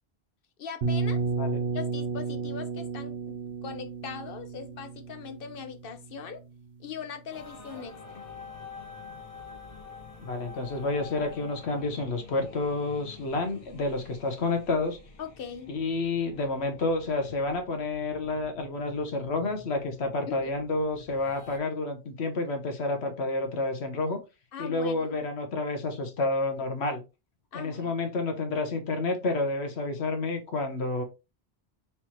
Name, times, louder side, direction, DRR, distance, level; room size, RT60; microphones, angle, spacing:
voice 1, 0.6-1.2 1.7-6.4 6.8-8.3 15.2-15.8 20.3-20.5 24.5-25.1 27.5-27.9, left 6 dB, 65° left, 0.9 m, -40 dB
sound 1, 0.8-6.6, right 4 dB, 65° right, 1.0 m, -32 dB
sound 2, 7.3-21.6, left 5 dB, 35° left, 0.9 m, -48 dB
voice 2, 10.2-15.0 15.7-24.2 24.6-27.0 27.5-31.0, left 2 dB, 85° left, 1.3 m, -29 dB
4.3 x 3.5 x 2.9 m
omnidirectional pair, 1.1 m